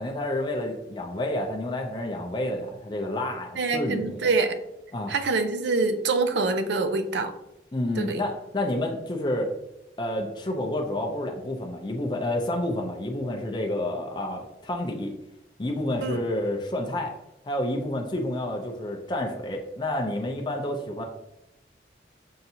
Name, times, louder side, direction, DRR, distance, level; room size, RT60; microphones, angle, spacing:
voice 1, 0.0-4.3 4.9-5.1 7.7-9.5 10.0-15.1 15.6-17.1 17.5-21.0, left 1 dB, 25° left, 2 dB, 0.4 m, -29 dB
voice 2, 3.6-4.6 5.1-7.3 8.0-8.2 16.0-16.2, right 3 dB, 80° right, 8 dB, 0.5 m, -25 dB
5.5 x 2.5 x 2.7 m, 0.88 s
head